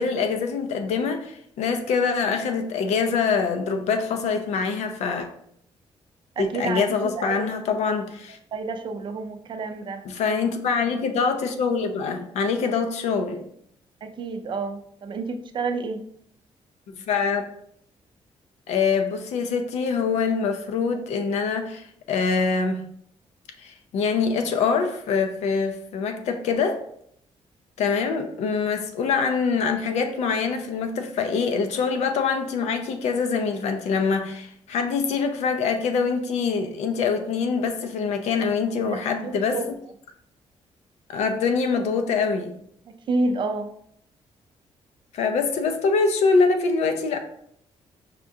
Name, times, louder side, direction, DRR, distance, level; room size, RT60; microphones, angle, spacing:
voice 1, 0.0-5.3 6.4-8.4 10.1-13.4 16.9-17.5 18.7-22.8 23.6-26.8 27.8-39.6 41.1-42.6 45.1-47.2, left 5 dB, 85° left, 0.5 m, -24 dB
voice 2, 6.4-6.8 7.1-7.5 8.5-10.1 14.0-16.1 38.9-39.7 42.9-43.8, right 3 dB, 45° right, 0.4 m, -29 dB
5.0 x 2.3 x 2.6 m
cardioid pair, 125°, 11 cm